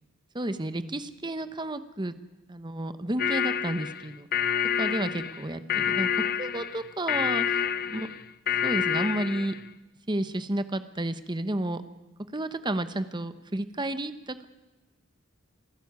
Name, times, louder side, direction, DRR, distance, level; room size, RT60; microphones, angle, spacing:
voice 1, 0.3-2.1 2.5-4.3 4.8-7.6 7.9-8.1 8.6-9.5 10.1-11.8 12.3-14.4, right 1 dB, 25° right, 11 dB, 1.1 m, -31 dB
sound 1, 3.2-9.6, left 8 dB, 50° left, 0.8 m, -28 dB
27.5 x 13.5 x 9.5 m, 1.1 s
head